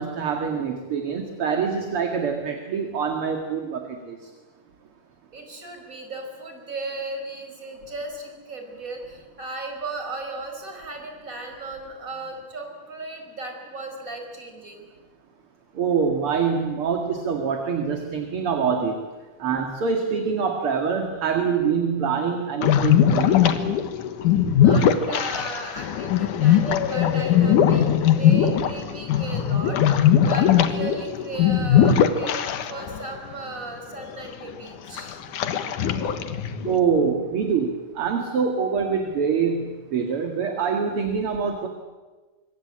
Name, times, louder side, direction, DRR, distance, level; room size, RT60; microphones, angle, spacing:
voice 1, 0.0-4.2 15.7-19.0 19.4-23.5 36.6-41.7, right 6 dB, 50° right, 4 dB, 2.6 m, -25 dB
voice 2, 5.3-14.8 24.6-35.3, right 2 dB, 25° right, 3 dB, 5.6 m, -36 dB
sound 1, 22.6-33.0 33.3-33.4 34.0-34.5 35.0-36.8, left 9 dB, 80° left, 2.8 m, -20 dB
25.0 x 24.5 x 8.8 m, 1.3 s
omnidirectional pair, 3.6 m